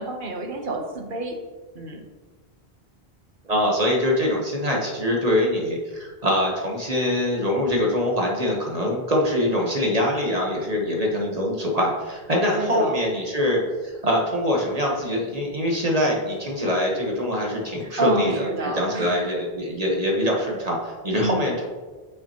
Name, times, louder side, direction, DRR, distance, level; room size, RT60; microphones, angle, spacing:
voice 1, 0.0-1.4 1.7-2.0 12.5-13.0 17.8-19.3 21.2-21.5, right 2 dB, 55° right, 3 dB, 1.1 m, -28 dB
voice 2, 3.4-21.7, left 1 dB, 40° right, -1 dB, 1.2 m, -24 dB
8.6 x 5.7 x 2.9 m, 1.3 s
omnidirectional pair, 1.0 m